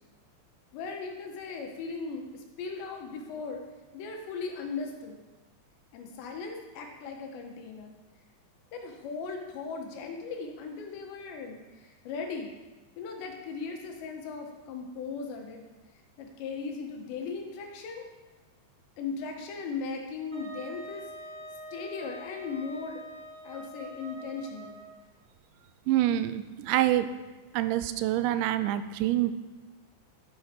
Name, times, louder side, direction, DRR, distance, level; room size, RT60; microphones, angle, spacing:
voice 1, 0.7-3.6 3.9-5.2 5.9-7.9 8.7-12.5 13.0-15.7 16.2-18.1 19.0-21.0 21.7-23.0 23.4-24.8, left 4 dB, 75° left, 2 dB, 3.4 m, -38 dB
Wind instrument woodwind instrument, 20.3-25.0, right 1 dB, 35° right, 1.6 m, -44 dB
voice 2, 25.9-27.1 27.5-29.3, right 13 dB, 85° right, 11 dB, 2.9 m, -26 dB
12.0 x 9.6 x 4.5 m, 1.2 s
omnidirectional pair, 5.2 m